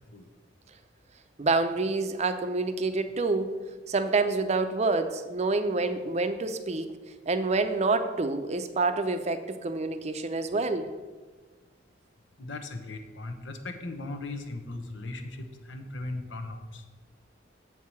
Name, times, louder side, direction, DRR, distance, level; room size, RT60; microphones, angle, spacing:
voice 1, 1.4-3.5 3.9-7.0 7.3-10.9, right 3 dB, 35° right, 9 dB, 0.5 m, -27 dB
voice 2, 12.4-16.8, left 2 dB, 90° left, 6 dB, 0.9 m, -38 dB
7.4 x 4.7 x 7.0 m, 1.4 s
head